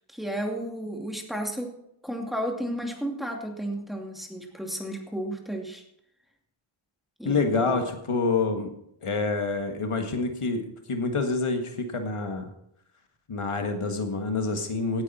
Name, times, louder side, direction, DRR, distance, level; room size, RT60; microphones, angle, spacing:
voice 1, 0.1-1.7 2.0-5.8 7.2-7.8, equal, ahead, 1 dB, 2.5 m, -33 dB
voice 2, 7.3-8.7 9.0-10.6 10.9-12.5 13.3-15.0, left 3 dB, 85° left, 5 dB, 1.8 m, -27 dB
17.0 x 9.7 x 4.3 m, 0.76 s
wide cardioid pair, 75°, 49 cm